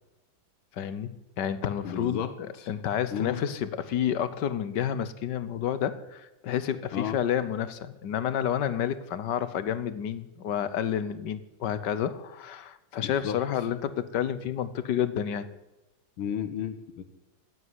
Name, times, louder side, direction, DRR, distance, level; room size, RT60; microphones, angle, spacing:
voice 1, 0.8-15.5, left 9 dB, 65° left, 14 dB, 1.5 m, -30 dB
voice 2, 1.8-2.7 3.1-3.4 6.9-7.2 13.0-13.4 16.2-17.0, left 8 dB, 85° left, 11 dB, 2.0 m, -33 dB
17.0 x 8.5 x 9.7 m, 1.0 s
omnidirectional pair, 2.2 m